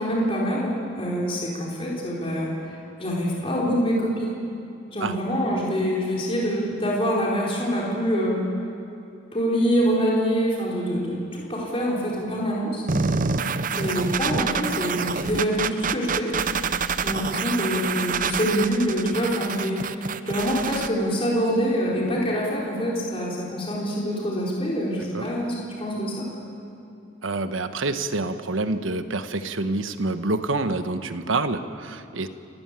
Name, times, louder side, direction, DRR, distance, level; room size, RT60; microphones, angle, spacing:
voice 1, 0.0-4.3 4.9-8.4 9.3-12.8 13.7-16.3 17.0-19.8 20.2-26.2, equal, 30° left, -4 dB, 4.3 m, -25 dB
sound 1, 12.9-20.9, right 5 dB, 45° right, 0.7 m, -27 dB
voice 2, 27.2-32.3, right 2 dB, 90° right, 9 dB, 1.2 m, -27 dB
29.5 x 15.5 x 9.1 m, 2.8 s
head